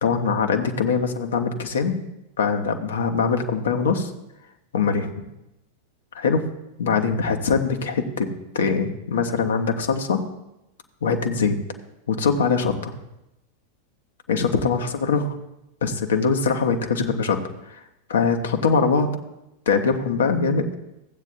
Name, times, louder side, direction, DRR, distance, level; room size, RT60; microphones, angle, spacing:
voice 1, 0.0-2.0 2.4-4.1 4.7-5.1 6.1-6.5 6.8-8.3 8.5-10.2 11.0-11.6 12.1-12.9 14.3-15.3 15.8-17.4 17.7-17.8 18.1-19.1 19.7-20.7, left 5 dB, 65° left, 5 dB, 0.9 m, -22 dB
15.5 x 8.2 x 2.6 m, 0.88 s
figure-of-eight pair, 90°, 0 cm